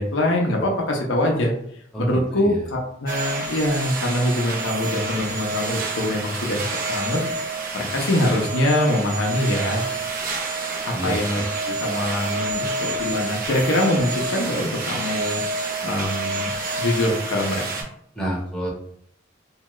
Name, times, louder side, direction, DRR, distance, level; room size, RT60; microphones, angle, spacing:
voice 1, 0.0-1.5 2.0-7.2 7.7-9.8 10.8-15.4 15.8-16.5 16.7-17.8, left 1 dB, 70° left, 0 dB, 0.6 m, -23 dB
voice 2, 1.9-2.7 10.9-11.5 18.1-18.7, right 1 dB, 5° left, -6 dB, 0.7 m, -29 dB
sound 1, 3.1-17.8, right 2 dB, 45° right, 0.6 m, -28 dB
2.7 x 2.3 x 3.0 m, 0.68 s
head